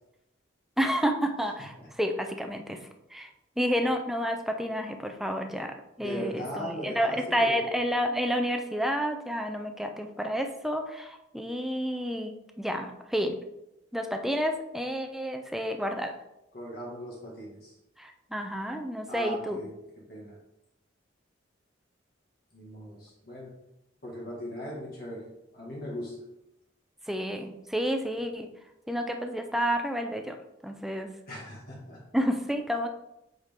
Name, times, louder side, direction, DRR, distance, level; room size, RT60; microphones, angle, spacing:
voice 1, 0.8-2.8 3.1-3.3 3.6-13.4 13.9-16.2 18.0-19.6 27.1-28.5 28.9-30.4 30.6-31.1 32.1-32.9, equal, ahead, 5 dB, 0.5 m, -30 dB
voice 2, 6.0-7.6 16.5-17.7 19.1-19.7 20.1-20.4 22.5-23.5 24.0-25.2 25.5-26.2 31.3-32.0, equal, 50° left, -4 dB, 1.8 m, -38 dB
8.0 x 4.1 x 3.5 m, 0.89 s
head